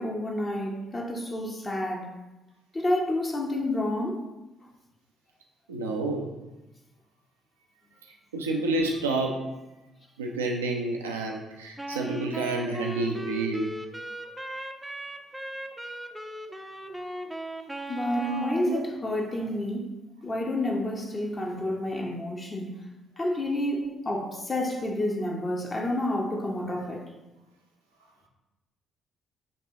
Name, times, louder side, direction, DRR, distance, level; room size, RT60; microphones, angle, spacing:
voice 1, 0.0-2.2 2.7-4.3 17.9-22.9 23.2-27.1, left 1 dB, 35° left, 0.7 m, -30 dB
voice 2, 5.7-6.3 8.3-9.4 10.2-13.7 18.2-18.9 23.8-23.9, right 2 dB, 80° right, 0.4 m, -29 dB
Wind instrument woodwind instrument, 11.8-18.7, right 1 dB, 10° right, 0.4 m, -37 dB
6.2 x 2.9 x 2.7 m
figure-of-eight pair, 45°, 0 cm